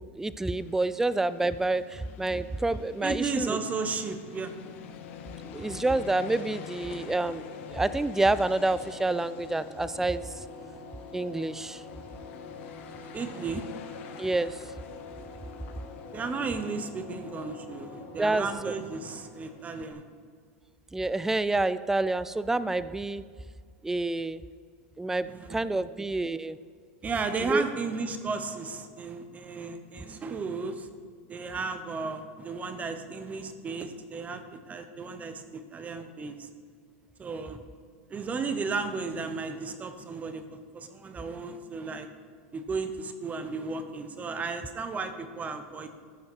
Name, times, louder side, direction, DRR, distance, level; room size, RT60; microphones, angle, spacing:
voice 1, 0.0-3.6 5.4-7.4 7.7-10.4 11.1-11.8 14.2-14.6 18.2-18.7 20.9-23.2 23.8-24.4 25.0-26.6 27.4-27.6, right 2 dB, 5° right, 15 dB, 0.3 m, -28 dB
sound 1, 0.6-17.0, left 7 dB, 70° left, 1.1 m, -49 dB
voice 2, 3.0-4.5 13.1-13.7 16.1-20.0 25.3-25.6 27.0-30.9 31.3-36.5 37.2-37.6 38.1-42.1 42.5-45.9, right 4 dB, 20° right, 8 dB, 0.9 m, -34 dB
sound 2, 4.0-19.9, left 4 dB, 55° left, 1.8 m, -45 dB
14.5 x 5.7 x 4.6 m, 2.1 s
supercardioid pair, 125°, 7 cm